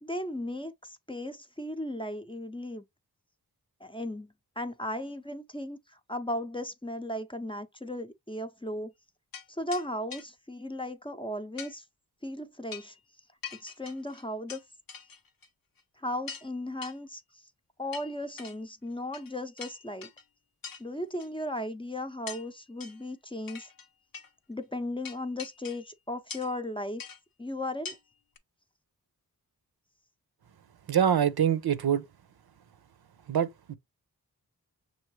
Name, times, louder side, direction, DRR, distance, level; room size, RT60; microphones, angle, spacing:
voice 1, 0.0-2.8 3.8-8.9 9.5-11.8 12.2-13.0 13.6-14.6 16.0-17.5 17.8-20.1 20.8-23.7 24.5-27.0 27.4-28.0, left 1 dB, 15° left, 0.6 m, -36 dB
sound 1, 9.3-9.5 9.7-9.9 10.1-10.3 11.6-11.7 12.7-13.0 13.4-14.6 14.9-15.5 15.8-15.9 16.3-16.5 16.8-17.0 17.9-18.6 19.1-19.3 19.6-20.2 20.6-20.8 21.2-21.3 22.3-22.5 22.8-23.0 23.5-23.9 24.1-24.3 25.0-25.9 26.3-26.6 27.0-27.2 27.9-28.0 28.4-28.5, left 6 dB, 65° left, 0.7 m, -43 dB
voice 2, 30.9-32.0 33.3-33.8, right 8 dB, 75° right, 0.7 m, -25 dB
6.3 x 2.6 x 3.1 m
wide cardioid pair, 55°, 38 cm